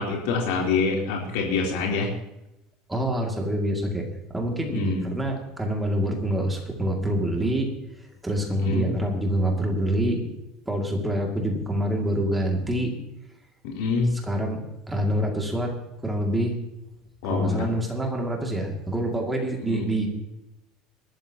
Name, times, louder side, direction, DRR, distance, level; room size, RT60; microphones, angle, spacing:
voice 1, 0.0-2.1 4.7-5.1 8.6-8.9 13.6-14.1 17.2-17.7 19.6-19.9, left 4 dB, 80° left, -1 dB, 3.6 m, -26 dB
voice 2, 2.9-7.7 8.2-10.2 10.7-12.9 14.1-15.7 16.0-16.6 17.3-20.1, right 1 dB, 5° right, 1 dB, 2.3 m, -26 dB
21.0 x 12.5 x 2.9 m, 0.89 s
cardioid pair, 170°, 0 cm